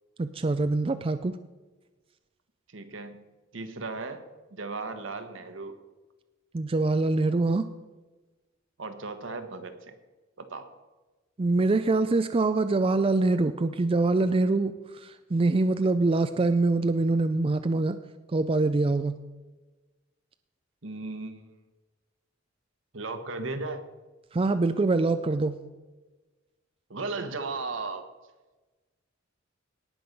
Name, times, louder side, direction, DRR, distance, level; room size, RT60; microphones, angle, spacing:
voice 1, 0.2-1.4 6.5-7.7 11.4-18.0 18.3-19.2 24.3-25.6, right 3 dB, 30° right, 10 dB, 0.4 m, -24 dB
voice 2, 2.7-3.3 3.5-4.2 4.5-5.8 8.8-9.9 10.4-10.7 20.8-21.5 22.9-23.8 26.9-28.0, right 3 dB, 75° right, 8 dB, 1.3 m, -36 dB
18.0 x 6.2 x 5.3 m, 1.2 s
head